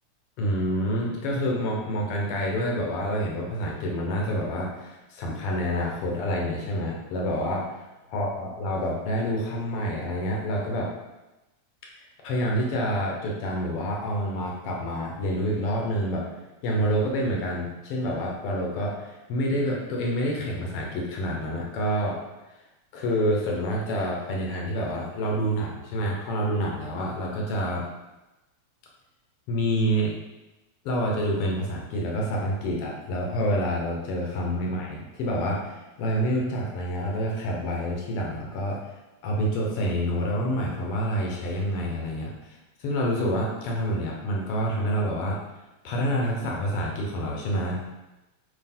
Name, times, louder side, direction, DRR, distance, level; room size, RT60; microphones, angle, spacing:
voice 1, 0.4-7.7 8.1-10.9 12.2-16.3 16.6-22.2 22.9-27.8 29.5-30.1 30.8-38.8 39.2-45.4 45.8-47.9, equal, 65° left, -1 dB, 1.7 m, -27 dB
7.5 x 2.9 x 4.3 m, 1.0 s
omnidirectional pair, 3.3 m